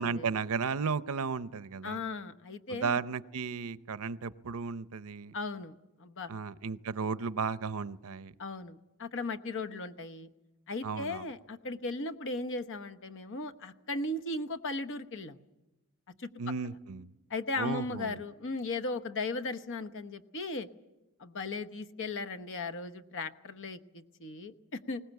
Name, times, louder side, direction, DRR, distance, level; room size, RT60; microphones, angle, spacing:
voice 1, 0.0-2.0 2.7-5.3 6.3-8.3 10.8-11.3 16.4-17.1 17.6-18.2, right 5 dB, 70° right, 15 dB, 0.6 m, -34 dB
voice 2, 1.8-3.0 5.3-6.3 8.4-10.3 10.7-15.4 16.2-16.3 17.3-20.7 21.2-25.0, left 3 dB, 60° left, 9 dB, 1.0 m, -37 dB
21.5 x 19.0 x 8.1 m, 1.0 s
head